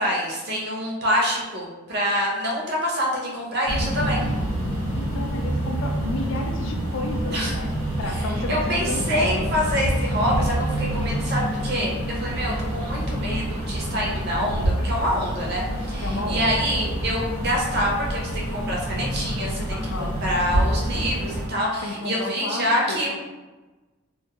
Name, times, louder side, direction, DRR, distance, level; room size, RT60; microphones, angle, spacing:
voice 1, 0.0-4.3 7.3-7.5 8.5-23.1, equal, 50° right, -2 dB, 0.6 m, -26 dB
sound 1, 3.7-21.5, right 1 dB, 80° right, 1.1 m, -27 dB
voice 2, 4.9-9.5 16.0-16.6 19.7-20.2 21.8-23.1, left 2 dB, 65° left, 3 dB, 0.3 m, -32 dB
2.3 x 2.2 x 2.8 m, 1.2 s
head